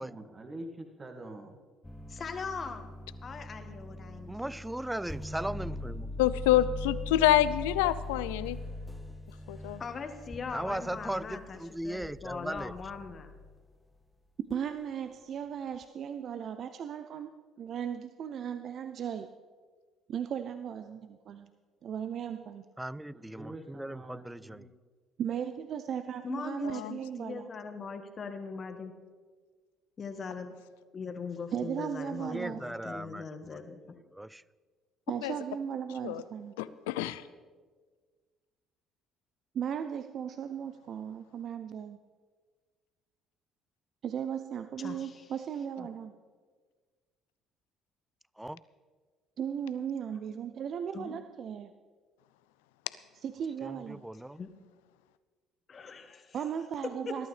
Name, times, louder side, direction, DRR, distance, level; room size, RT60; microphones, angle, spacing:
voice 1, 0.0-1.6 23.1-24.8, right 1 dB, 30° right, 5 dB, 1.9 m, -45 dB
sound 1, 1.8-13.6 14.5-14.8, left 1 dB, 10° left, 0.9 m, -41 dB
voice 2, 2.1-2.9 3.2-4.6 9.8-13.3 26.2-28.9 30.0-30.5 30.9-33.8 44.8-45.2 45.8-45.9 50.9-51.1 54.4-54.5 55.7-56.4 57.0-57.2, left 5 dB, 40° left, 6 dB, 1.6 m, -41 dB
voice 3, 4.3-6.1 10.5-12.7 22.8-24.6 32.3-33.2 33.5-33.6 34.1-34.4 48.4-48.6 53.6-54.4, right 1 dB, 10° right, 20 dB, 0.4 m, -38 dB
voice 4, 6.2-8.6 9.5-9.8 26.6-26.9 35.2-35.3 36.0-36.2 36.6-37.1, left 14 dB, 80° left, 15 dB, 0.5 m, -27 dB
voice 5, 14.5-17.3 17.6-19.3 20.1-21.5 21.8-22.6 25.2-27.5 31.5-32.6 35.1-36.5 39.5-42.0 44.0-46.1 49.4-51.7 53.2-54.0 56.3-57.3, right 8 dB, 55° right, 9 dB, 0.6 m, -36 dB
20.5 x 12.0 x 3.3 m, 1.5 s
hypercardioid pair, 55°, 0 cm